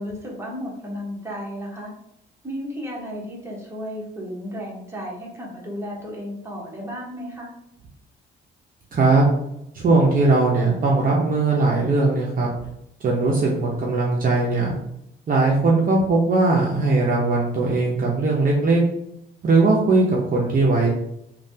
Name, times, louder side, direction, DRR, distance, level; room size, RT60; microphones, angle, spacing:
voice 1, 0.0-1.9 2.4-7.5, equal, 15° right, -4 dB, 1.1 m, -33 dB
voice 2, 8.9-9.2 9.7-12.5 13.0-14.7 15.3-18.8 19.4-20.9, right 3 dB, 45° right, -3 dB, 0.6 m, -19 dB
3.1 x 2.3 x 2.7 m, 0.80 s
cardioid pair, 90°, 20 cm